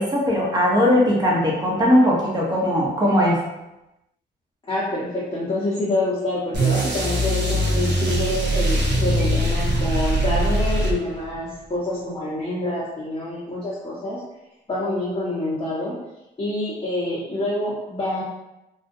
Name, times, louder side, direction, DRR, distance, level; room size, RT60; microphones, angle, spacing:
voice 1, 0.0-3.4, equal, 20° right, -5 dB, 0.9 m, -19 dB
voice 2, 4.7-14.2 14.7-15.9 16.4-18.2, left 1 dB, 25° left, -10 dB, 0.8 m, -26 dB
sound 1, 6.5-11.4, right 1 dB, 60° right, 0.8 m, -22 dB
2.4 x 2.1 x 2.6 m, 0.94 s
cardioid pair, 90°, 20 cm